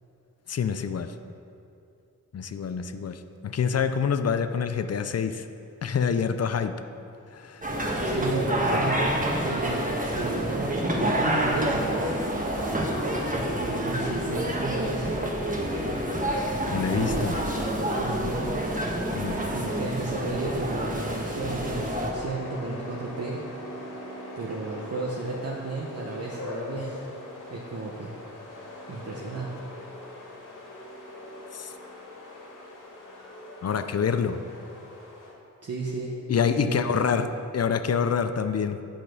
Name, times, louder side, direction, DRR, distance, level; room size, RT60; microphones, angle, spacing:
voice 1, 0.5-1.1 2.3-5.5 5.8-6.7 7.3-7.6 16.7-17.4 19.1-19.4 31.5-31.7 33.6-34.4 36.3-37.3 37.5-38.8, left 6 dB, 50° left, 10 dB, 0.5 m, -26 dB
sound 1, 7.6-22.1, right 1 dB, 25° right, 1.3 m, -28 dB
voice 2, 8.0-9.1 9.4-11.9 13.5-15.2 16.9-17.6 17.9-18.6 19.5-23.4 24.3-27.1 27.5-28.2 28.9-29.5 35.6-36.8 37.1-37.3, right 3 dB, 50° right, -3 dB, 1.0 m, -33 dB
sound 2, 22.1-35.3, left 1 dB, 75° left, 1.8 m, -42 dB
8.5 x 5.2 x 6.1 m, 2.6 s
wide cardioid pair, 95°, 31 cm